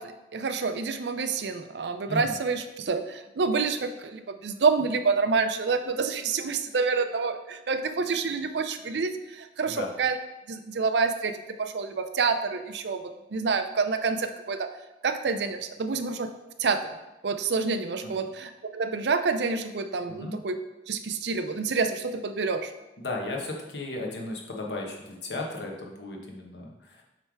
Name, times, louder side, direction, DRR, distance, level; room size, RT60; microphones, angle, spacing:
voice 1, 0.0-10.2 10.5-14.7 15.0-16.3 16.6-16.8 17.2-20.6 20.9-22.7, right 4 dB, 75° right, 9 dB, 0.5 m, -28 dB
voice 2, 23.0-26.7, left 2 dB, 80° left, 0 dB, 1.2 m, -35 dB
7.5 x 3.3 x 4.7 m, 0.98 s
head